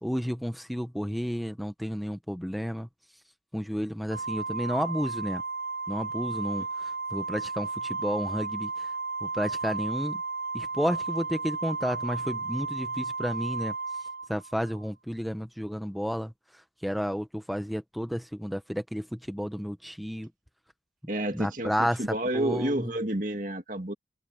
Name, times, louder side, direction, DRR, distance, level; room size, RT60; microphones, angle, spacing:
voice 1, 0.0-2.9 3.5-5.4 5.9-8.9 9.2-10.2 10.5-13.7 14.3-20.3 21.3-22.0 22.3-22.9, equal, ahead, 0.7 m, -32 dB
Organ, 4.1-14.8, right 4 dB, 75° right, 5.4 m, -34 dB
voice 2, 21.1-23.9, right 1 dB, 45° right, 2.1 m, -30 dB
open air
head